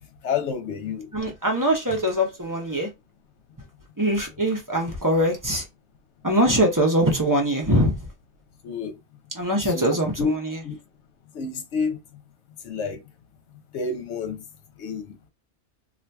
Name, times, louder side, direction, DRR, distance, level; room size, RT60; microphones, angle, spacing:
voice 1, 0.2-1.1 8.6-8.9 9.6-10.3 10.6-10.8 11.3-12.0 12.6-13.0 13.7-14.4 14.8-15.0, left 5 dB, 70° left, 1.0 m, -28 dB
voice 2, 1.1-2.9 4.0-5.6 6.2-8.1 9.3-10.6, equal, 20° right, 0.7 m, -22 dB
2.8 x 2.5 x 3.4 m
omnidirectional pair, 1.2 m